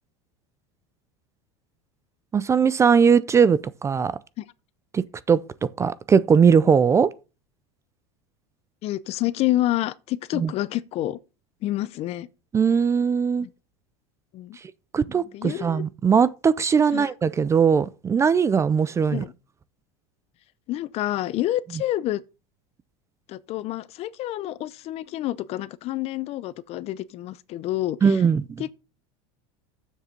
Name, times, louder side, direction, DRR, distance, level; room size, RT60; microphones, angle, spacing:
voice 1, 2.3-4.1 4.9-7.1 10.3-10.5 12.5-13.5 14.9-19.2 28.0-28.6, right 6 dB, 20° right, 0.4 m, -20 dB
voice 2, 8.8-11.2 11.6-12.3 13.4-13.5 14.3-14.6 15.0-15.8 16.9-17.1 19.1-19.3 20.7-22.2 23.3-28.2 28.6-28.7, left 15 dB, 45° left, 0.6 m, -28 dB
7.4 x 6.6 x 5.8 m
supercardioid pair, 130°, 15 cm